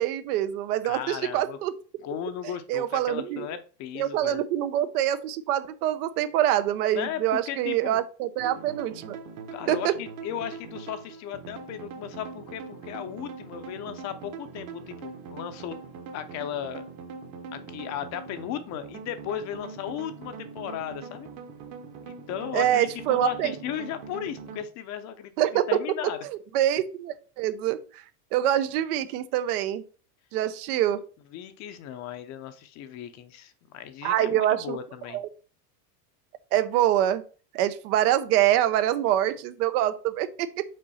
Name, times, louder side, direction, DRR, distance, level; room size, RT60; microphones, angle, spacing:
voice 1, 0.0-1.7 2.7-3.5 3.9-9.2 9.7-9.9 22.5-23.5 25.4-25.7 26.5-27.8 28.3-29.8 30.3-31.0 34.0-34.8 35.1-35.3 36.5-37.2 37.5-40.6, right 12 dB, 70° right, 12 dB, 0.9 m, -25 dB
voice 2, 0.8-1.6 2.0-4.4 6.9-8.0 9.5-15.8 16.1-16.8 17.5-21.3 22.1-26.2 31.3-35.2, left 10 dB, 35° left, 10 dB, 0.7 m, -36 dB
sound 1, 8.4-24.6, right 5 dB, 45° right, 1.3 m, -42 dB
5.4 x 4.0 x 5.5 m, 0.39 s
supercardioid pair, 140°, 48 cm